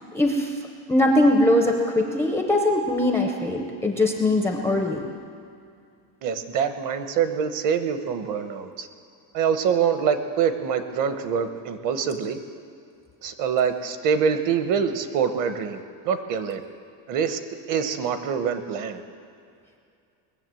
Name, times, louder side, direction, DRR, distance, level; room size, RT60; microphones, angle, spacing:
voice 1, 0.1-0.5 0.9-5.0, left 1 dB, 5° left, 1 dB, 0.5 m, -21 dB
voice 2, 6.2-8.9 9.3-12.4 13.2-16.6 17.1-17.4 17.7-19.0, right 7 dB, 45° right, 9 dB, 0.9 m, -25 dB
20.0 x 7.4 x 7.5 m, 2.4 s
cardioid pair, 175°, 46 cm